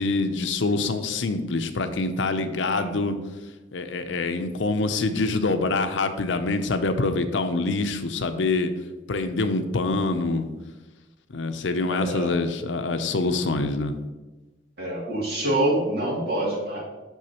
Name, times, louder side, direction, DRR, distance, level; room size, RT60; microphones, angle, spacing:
voice 1, 0.0-3.2 3.7-8.7 9.1-10.5 11.3-13.9, left 3 dB, 75° left, 8 dB, 0.6 m, -25 dB
voice 2, 2.6-3.0 12.0-12.3 14.8-16.8, right 1 dB, 55° right, -5 dB, 2.5 m, -26 dB
8.1 x 6.2 x 2.9 m, 1.1 s
head